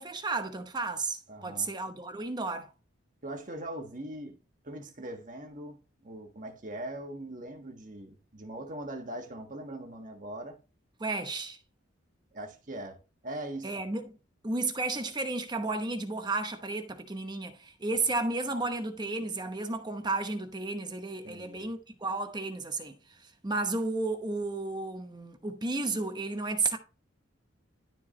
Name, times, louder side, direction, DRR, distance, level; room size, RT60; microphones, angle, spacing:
voice 1, 0.0-2.7 11.0-11.6 13.6-14.2 14.4-26.8, right 3 dB, 20° right, 0.9 m, -33 dB
voice 2, 1.3-1.7 3.2-4.4 4.6-10.6 12.3-13.0 13.2-13.8 18.1-18.2 21.2-21.7, right 1 dB, 40° right, 1.5 m, -41 dB
12.5 x 4.6 x 3.1 m
head